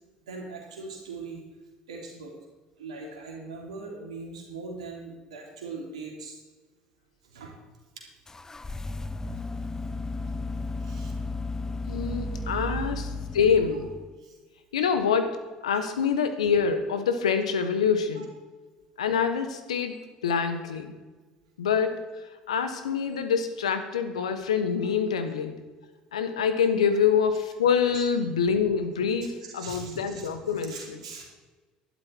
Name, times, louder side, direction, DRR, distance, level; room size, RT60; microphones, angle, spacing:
voice 1, 0.3-1.4 1.9-2.3 2.8-6.4 7.3-7.5 8.0-8.1 10.8-11.1 12.2-12.4 12.7-12.8 14.2-14.4 18.1-18.2 27.9-28.0 29.4-30.3 30.6-31.3, right 4 dB, 85° right, 0 dB, 3.3 m, -41 dB
sound 1, 8.3-14.2, left 2 dB, 15° left, 0.7 m, -34 dB
voice 2, 11.9-13.9 14.7-18.3 19.0-20.9 21.6-22.0 22.5-25.6 26.1-31.0, left 6 dB, 90° left, 9 dB, 1.3 m, -26 dB
12.0 x 11.5 x 4.5 m, 1.3 s
hypercardioid pair, 70°, 3 cm